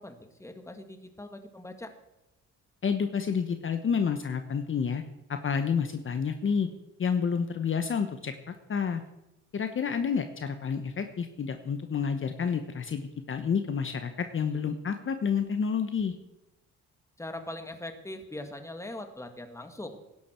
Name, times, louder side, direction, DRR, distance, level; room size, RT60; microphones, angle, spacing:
voice 1, 0.0-1.9 17.2-20.0, left 1 dB, 10° left, 7 dB, 1.9 m, -41 dB
voice 2, 2.8-5.0 5.3-6.7 7.0-8.3 8.7-9.0 9.5-16.1, left 6 dB, 40° left, 8 dB, 1.1 m, -29 dB
17.0 x 11.5 x 4.5 m, 0.96 s
cardioid pair, 90°, 30 cm